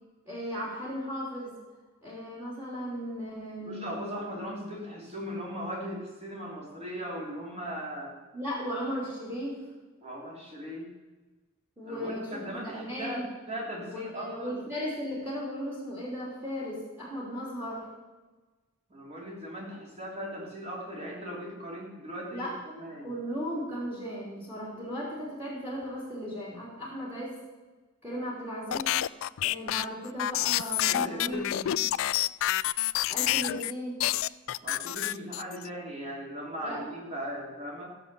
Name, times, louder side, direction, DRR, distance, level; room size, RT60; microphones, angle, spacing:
voice 1, 0.3-1.6 2.0-3.9 8.3-9.6 11.8-12.3 12.6-13.3 13.8-17.9 22.3-22.6 23.0-27.4 28.0-28.9 29.4-31.8 33.1-34.0 36.6-36.8, equal, 10° right, -4 dB, 3.0 m, -36 dB
voice 2, 3.6-8.1 10.0-10.9 11.9-14.6 18.9-23.1 30.9-31.6 34.6-37.9, equal, 30° right, -3 dB, 3.4 m, -38 dB
sound 1, 28.7-33.7 34.0-35.7, left 14 dB, 65° left, 0.3 m, -28 dB
14.5 x 7.4 x 6.8 m, 1.2 s
head